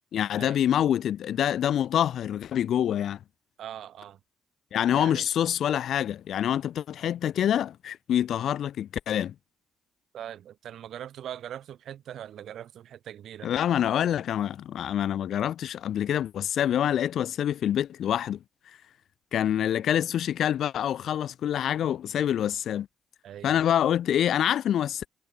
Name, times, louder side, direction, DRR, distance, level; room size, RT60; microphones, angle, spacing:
voice 1, 0.1-3.2 4.7-9.3 13.4-18.4 19.3-22.9 23.4-25.1, left 10 dB, 70° left, 0.4 m, -26 dB
voice 2, 3.6-4.2 5.0-5.3 10.1-13.5 23.2-23.6, right 10 dB, 70° right, 3.8 m, -41 dB
cardioid pair, 90°, 0 cm